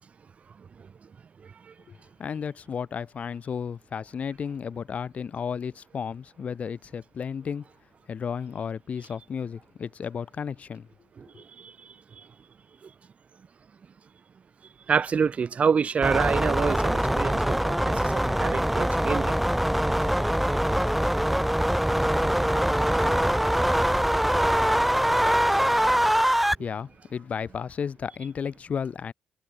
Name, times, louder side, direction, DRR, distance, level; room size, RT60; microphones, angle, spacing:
voice 1, 1.9-7.6 8.1-10.9 26.6-29.1, left 7 dB, 50° left, 0.5 m, -33 dB
voice 2, 14.9-19.4 25.8-25.9, right 6 dB, 50° right, 0.8 m, -26 dB
sound 1, 16.0-26.5, equal, 5° right, 0.4 m, -23 dB
cardioid pair, 80°, 3 cm